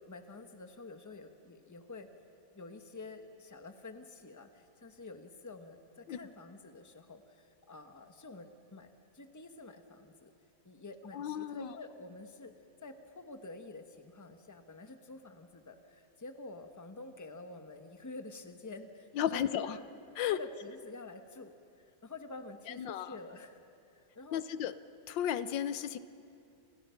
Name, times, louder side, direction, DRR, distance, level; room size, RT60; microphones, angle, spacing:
voice 1, 0.0-2.1 2.5-8.9 9.1-10.3 10.6-12.5 12.8-19.8 20.3-23.6 23.9-24.4, left 2 dB, 10° left, 6 dB, 1.1 m, -49 dB
voice 2, 11.1-11.7 19.2-19.8 20.2-20.4 22.8-23.1 24.3-24.7 25.1-26.0, left 10 dB, 80° left, 14 dB, 1.5 m, -33 dB
29.0 x 28.5 x 5.9 m, 2.6 s
omnidirectional pair, 2.0 m